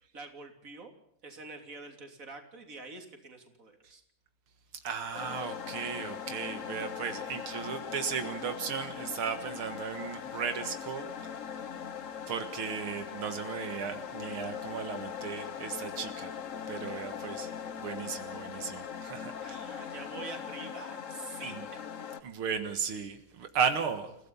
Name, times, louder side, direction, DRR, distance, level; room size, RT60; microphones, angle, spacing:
voice 1, 0.1-0.9 1.2-4.0 19.3-21.8, right 3 dB, 40° right, 4 dB, 3.7 m, -46 dB
voice 2, 4.8-11.1 11.5-11.6 12.3-16.3 16.7-17.5 17.8-19.6 21.4-21.6 22.2-24.2, right 6 dB, 85° right, 7 dB, 2.5 m, -35 dB
sound 1, 5.1-22.2, left 7 dB, 45° left, 1.1 m, -40 dB
29.0 x 17.0 x 5.6 m, 0.73 s
omnidirectional pair, 2.3 m